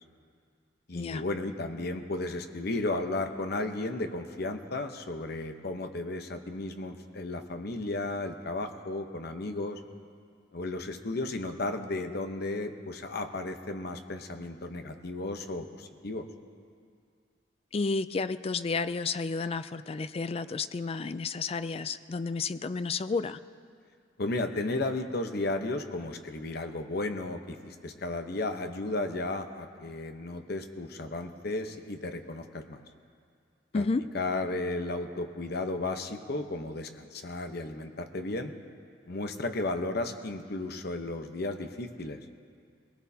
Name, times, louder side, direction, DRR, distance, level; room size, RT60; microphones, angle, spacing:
voice 1, 0.9-9.8 10.5-16.2 24.2-32.8 33.7-33.8 34.1-38.5 39.1-42.2, left 2 dB, 55° left, 6 dB, 0.9 m, -34 dB
voice 2, 17.7-23.4 33.7-34.1, left 4 dB, 30° left, 13 dB, 0.3 m, -31 dB
21.5 x 18.5 x 2.8 m, 2.2 s
head